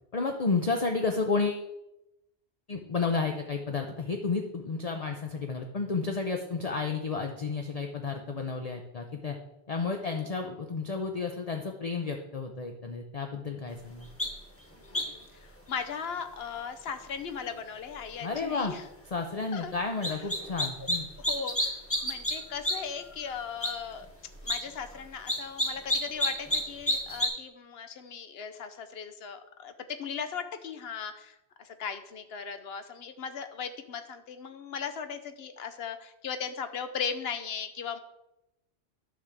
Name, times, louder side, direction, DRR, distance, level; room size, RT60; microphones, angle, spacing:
voice 1, 0.1-1.7 2.7-9.4 9.7-14.1 18.2-18.7 19.1-21.1, left 4 dB, 40° left, 3 dB, 0.7 m, -31 dB
sound 1, 14.2-14.3 14.9-15.2 20.0-21.0 21.2-22.3 22.6-22.7 23.1-23.2 23.6-23.7 24.3-24.6 25.3-26.6 26.9-27.3, left 1 dB, 10° left, 1.2 m, -28 dB
voice 2, 14.8-18.9 19.5-19.7 21.2-24.1 24.4-38.0, left 6 dB, 65° left, 8 dB, 0.9 m, -38 dB
10.5 x 3.5 x 6.6 m, 0.90 s
omnidirectional pair, 1.1 m